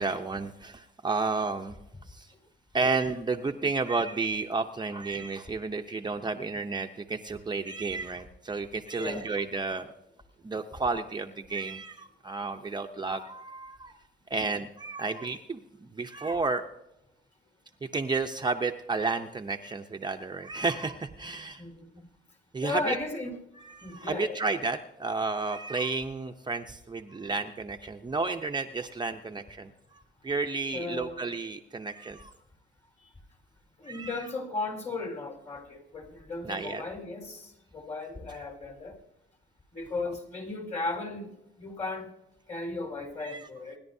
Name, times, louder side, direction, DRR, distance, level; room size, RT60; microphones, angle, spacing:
voice 1, 0.0-1.8 2.1-2.3 2.7-9.8 10.4-14.0 14.3-16.6 17.8-21.6 22.5-23.0 23.6-29.7 30.2-32.3 33.9-34.2 36.4-36.8 43.2-43.4, right 3 dB, 20° right, 4 dB, 0.7 m, -32 dB
voice 2, 9.0-9.3 21.6-22.0 22.6-23.4 23.8-24.4 30.7-31.2 33.0-33.1 33.8-39.0 39.7-41.3 41.6-42.1 42.5-43.8, left 3 dB, 35° left, 2 dB, 4.1 m, -36 dB
26.5 x 10.5 x 2.7 m, 0.89 s
cardioid pair, 90°, 20 cm